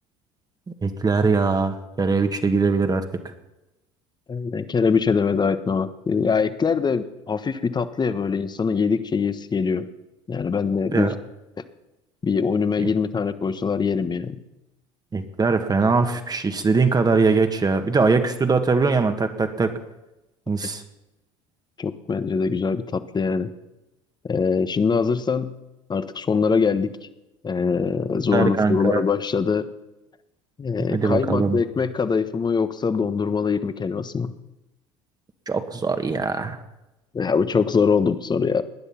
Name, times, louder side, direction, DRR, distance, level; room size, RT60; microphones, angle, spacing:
voice 1, 0.8-3.0 10.9-11.1 12.8-12.9 15.1-19.7 20.5-20.8 28.3-29.0 30.9-31.6 35.5-36.6, right 4 dB, 25° right, 7 dB, 1.8 m, -21 dB
voice 2, 4.3-9.9 10.3-11.1 12.2-14.4 21.8-23.5 24.2-25.6 25.9-26.9 27.4-29.7 30.6-34.3 37.1-38.6, left 5 dB, 25° left, 12 dB, 1.3 m, -23 dB
19.5 x 10.0 x 5.8 m, 0.98 s
hypercardioid pair, 70°, 16 cm